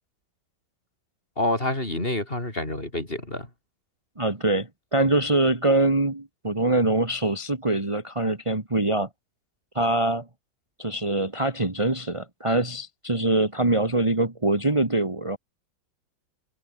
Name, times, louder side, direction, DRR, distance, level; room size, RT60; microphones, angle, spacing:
voice 1, 1.4-3.5, left 1 dB, 25° left, 5.2 m, -27 dB
voice 2, 4.2-9.1 9.7-10.3 10.8-15.4, right 2 dB, 15° right, 2.2 m, -24 dB
omnidirectional pair, 2.1 m